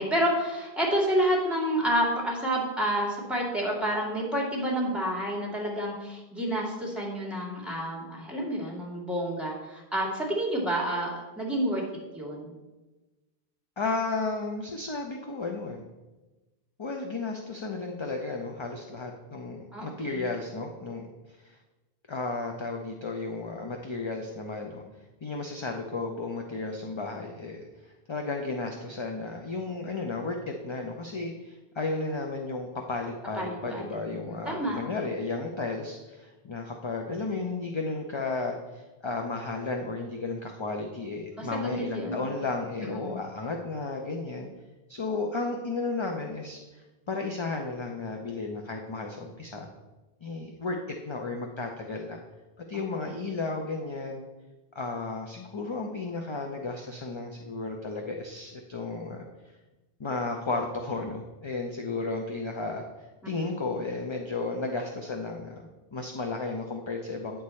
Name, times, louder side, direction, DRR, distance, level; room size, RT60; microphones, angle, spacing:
voice 1, 0.0-11.8 12.1-12.5 19.7-20.3 33.3-33.9 34.3-34.8 41.3-42.2 42.8-43.2 53.1-53.2, equal, ahead, -3 dB, 2.1 m, -29 dB
voice 2, 13.8-15.8 16.8-21.6 22.1-24.8 25.2-44.5 44.9-49.7 50.2-50.8 51.0-52.2 52.7-54.2 54.7-59.3 60.0-62.8 63.3-65.6 65.9-67.4, left 3 dB, 30° left, 2 dB, 0.6 m, -33 dB
9.3 x 6.7 x 4.2 m, 1.1 s
omnidirectional pair, 1.1 m